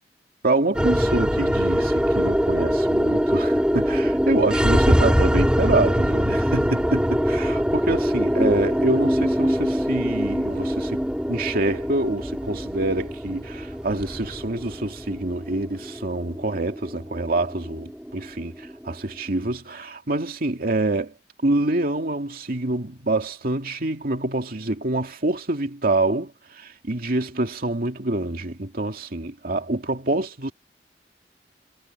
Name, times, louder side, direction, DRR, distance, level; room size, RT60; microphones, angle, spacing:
voice 1, 0.4-11.0 11.3-18.5 18.9-21.1 21.4-30.5, right 2 dB, 55° right, 2.4 m, -26 dB
sound 1, 0.7-19.1, equal, 5° right, 4.5 m, -23 dB
head